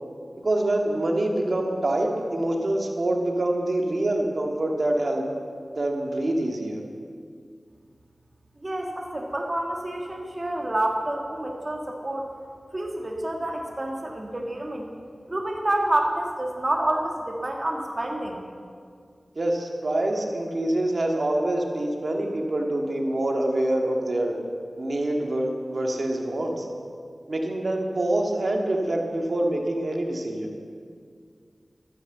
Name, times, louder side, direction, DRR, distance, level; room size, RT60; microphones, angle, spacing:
voice 1, 0.4-5.2 5.7-6.8 19.3-24.4 24.8-26.7 27.3-30.5, right 1 dB, 60° right, 1 dB, 1.8 m, -25 dB
voice 2, 8.6-12.3 12.7-14.8 15.3-18.4, right 1 dB, 35° right, 1 dB, 1.7 m, -28 dB
13.0 x 9.6 x 8.0 m, 2.2 s
wide cardioid pair, 55°, 0 cm